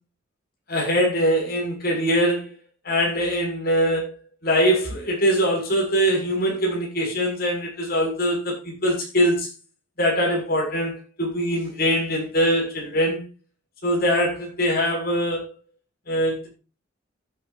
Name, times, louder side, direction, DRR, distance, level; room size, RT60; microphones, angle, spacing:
voice 1, 0.7-2.5 2.8-4.1 4.4-9.5 10.0-13.2 13.8-15.5 16.1-16.5, equal, 50° left, 7.1 m, -22 dB
14.5 x 9.1 x 2.8 m
head